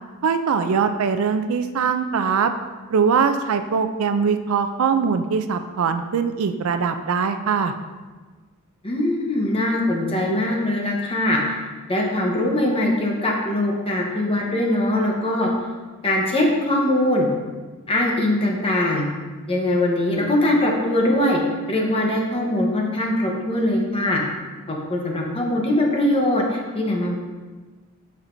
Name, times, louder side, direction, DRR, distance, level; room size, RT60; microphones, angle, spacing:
voice 1, 0.2-2.5 2.9-7.7, right 6 dB, 70° right, 8 dB, 0.4 m, -21 dB
voice 2, 8.8-11.4 11.9-15.5 16.0-17.3 17.9-19.1 19.5-21.4 21.7-24.2 24.7-27.2, left 1 dB, 25° left, -1 dB, 0.9 m, -21 dB
7.2 x 5.7 x 2.6 m, 1.3 s
head